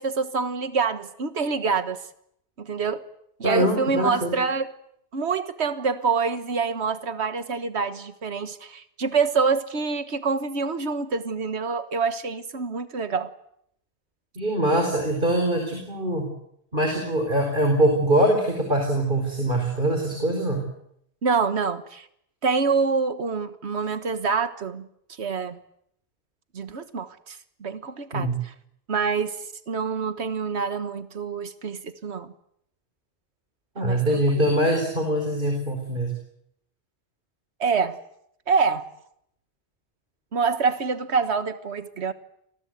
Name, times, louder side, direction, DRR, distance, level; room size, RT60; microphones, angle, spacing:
voice 1, 0.0-2.0 2.6-3.0 3.4-4.7 5.1-13.3 21.2-22.1 22.4-24.9 25.2-25.6 26.5-28.5 28.9-29.4 29.7-32.3 33.8-34.2 37.6-38.0 38.5-38.9 40.3-42.1, right 5 dB, 80° right, 11 dB, 1.7 m, -26 dB
voice 2, 3.4-4.4 14.3-16.2 16.7-20.6 28.1-28.4 33.7-36.1, right 1 dB, 50° right, 3 dB, 5.1 m, -23 dB
29.5 x 22.0 x 8.1 m, 0.75 s
omnidirectional pair, 1.1 m